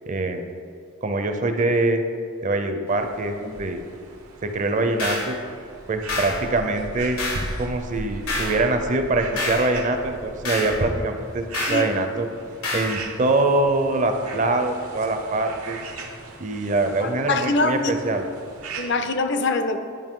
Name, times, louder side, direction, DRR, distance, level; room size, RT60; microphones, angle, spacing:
voice 1, 0.1-0.5 1.0-2.0 2.4-3.8 4.4-5.4 5.9-7.2 7.6-12.3 12.7-15.8 16.4-18.3, right 2 dB, 35° right, 6 dB, 0.5 m, -23 dB
sound 1, 2.9-19.1, right 2 dB, 85° right, 1.0 m, -37 dB
sound 2, 5.0-5.3 6.1-6.4 7.2-7.5 8.3-8.6 9.4-9.7 10.5-10.8 11.5-11.9 12.6-13.0, left 2 dB, 85° left, 1.7 m, -27 dB
voice 2, 17.0-18.0 18.8-19.8, left 3 dB, 55° left, 7 dB, 0.6 m, -23 dB
11.5 x 5.2 x 3.7 m, 2.4 s
head